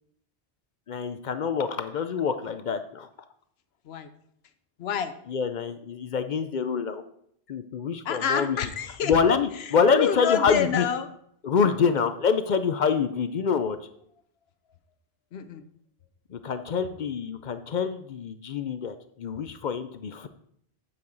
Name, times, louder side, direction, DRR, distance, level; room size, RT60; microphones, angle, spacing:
voice 1, 0.9-3.1 5.3-7.0 7.5-8.6 9.0-10.9 11.4-13.8 16.3-20.3, left 6 dB, 55° left, 10 dB, 0.6 m, -26 dB
voice 2, 4.8-5.1 8.0-9.1 9.6-11.1 15.3-15.6, left 7 dB, 75° left, 10 dB, 0.9 m, -28 dB
8.5 x 7.0 x 3.9 m, 0.70 s
omnidirectional pair, 1.1 m